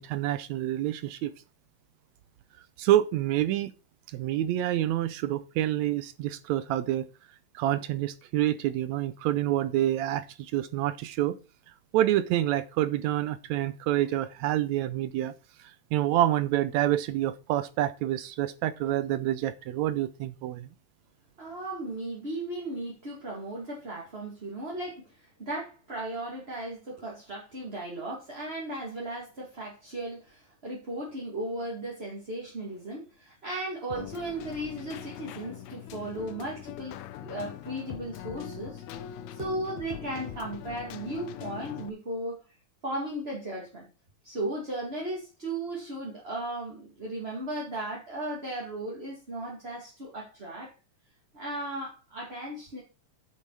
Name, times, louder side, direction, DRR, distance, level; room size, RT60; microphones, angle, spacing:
voice 1, 0.0-1.3 2.8-3.7 4.1-7.1 7.5-11.4 11.9-15.3 15.9-20.7, right 13 dB, 80° right, 14 dB, 1.7 m, -27 dB
voice 2, 21.4-38.8 39.3-42.4 42.8-43.9 44.2-50.7 51.3-52.8, right 1 dB, 20° right, -3 dB, 1.9 m, -36 dB
Keyboard (musical), 33.9-41.9, left 9 dB, 75° left, 2.0 m, -42 dB
9.3 x 7.5 x 4.7 m, 0.30 s
omnidirectional pair, 3.7 m